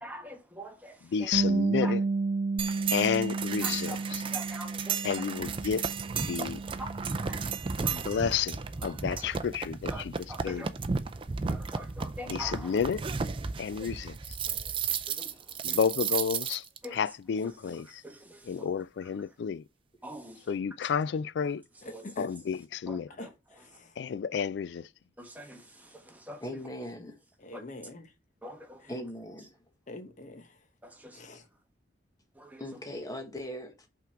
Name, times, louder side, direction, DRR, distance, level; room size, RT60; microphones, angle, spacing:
voice 1, 0.0-1.3 1.8-2.0 3.6-5.2 6.8-8.2 8.7-9.2 9.9-10.7 11.4-12.9 15.1-15.8 16.8-17.1 17.4-19.4 20.0-20.6 20.8-20.9 21.4-22.0 22.9-23.3 23.6-23.7 25.2-26.6 27.5-27.6 28.4-29.1 30.8-31.3 32.3-32.8, equal, 10° right, 1.1 m, -46 dB
voice 2, 1.1-2.0 2.9-3.9 5.0-5.9 6.2-6.6 8.1-9.9 10.4-10.6 12.3-13.0 13.6-14.2 15.6-16.6 17.0-17.8 18.5-19.6 20.5-21.6 22.2-23.0 24.0-24.9, left 7 dB, 65° left, 0.3 m, -30 dB
Bass guitar, 1.3-7.6, right 3 dB, 75° right, 0.7 m, -32 dB
sound 1, 2.6-16.9, right 6 dB, 30° right, 0.4 m, -34 dB
voice 3, 14.5-14.9 26.4-27.1 28.9-29.5 32.6-33.9, equal, 20° left, 1.2 m, -40 dB
voice 4, 21.8-22.3 23.2-24.0 27.4-28.1 28.8-28.9 29.9-30.7 31.1-31.5, left 1 dB, 45° left, 1.0 m, -44 dB
5.7 x 3.7 x 5.7 m
head